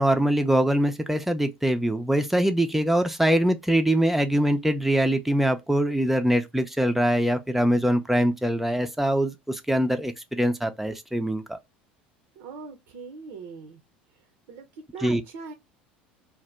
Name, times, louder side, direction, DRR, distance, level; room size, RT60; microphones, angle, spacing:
voice 1, 0.0-11.6 15.0-15.2, right 1 dB, 5° right, 0.5 m, -23 dB
voice 2, 12.4-13.8 14.1-15.5, right 5 dB, 60° right, 0.6 m, -41 dB
2.7 x 2.1 x 3.2 m
figure-of-eight pair, 70°, 5 cm